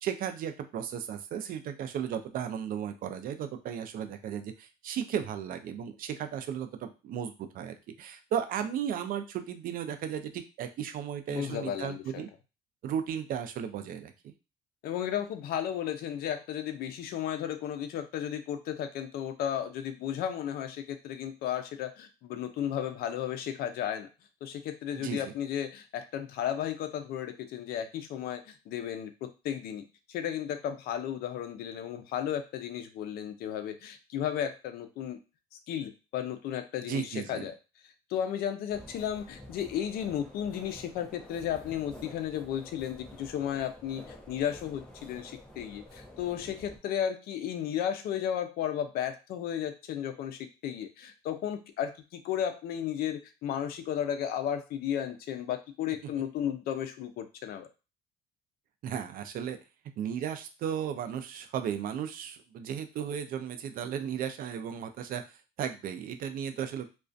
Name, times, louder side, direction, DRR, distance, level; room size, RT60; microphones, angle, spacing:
voice 1, 0.0-12.3 12.8-14.1 24.9-25.3 36.9-37.5 58.8-59.6 60.0-65.2 65.6-66.9, right 8 dB, 55° right, 8 dB, 0.4 m, -35 dB
voice 2, 11.3-12.2 14.8-24.1 24.4-35.2 35.7-37.5 38.1-57.7, left 9 dB, 65° left, 8 dB, 0.4 m, -34 dB
sound 1, 38.7-46.8, left 1 dB, 5° left, 0.5 m, -50 dB
2.4 x 2.1 x 2.4 m, 0.30 s
cardioid pair, 110°, 17 cm